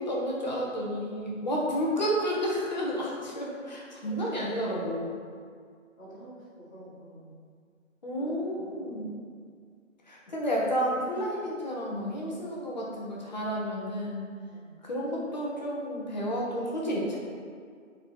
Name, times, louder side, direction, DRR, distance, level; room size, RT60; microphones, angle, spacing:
voice 1, 0.0-5.1 8.0-9.1 10.1-14.3 14.8-17.1, equal, 35° left, -4 dB, 1.4 m, -31 dB
voice 2, 4.0-4.5 6.0-7.3 8.2-9.1 14.5-14.7, right 1 dB, 5° left, -18 dB, 0.9 m, -49 dB
7.7 x 4.5 x 4.6 m, 2.1 s
figure-of-eight pair, 155°, 40 cm